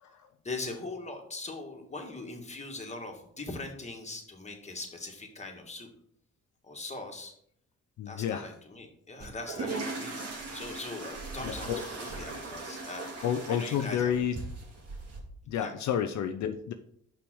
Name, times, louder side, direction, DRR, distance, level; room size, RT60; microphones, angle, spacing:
voice 1, 0.4-5.9 6.6-7.3 8.1-14.1 15.6-15.7, left 3 dB, 20° left, 2 dB, 1.9 m, -41 dB
voice 2, 8.0-8.5 11.4-11.8 13.2-14.4 15.5-16.7, left 9 dB, 70° left, 8 dB, 0.6 m, -30 dB
sound 1, 9.2-15.2, right 3 dB, 55° right, 2.2 m, -39 dB
5.9 x 5.0 x 6.3 m, 0.69 s
cardioid pair, 90°, 30 cm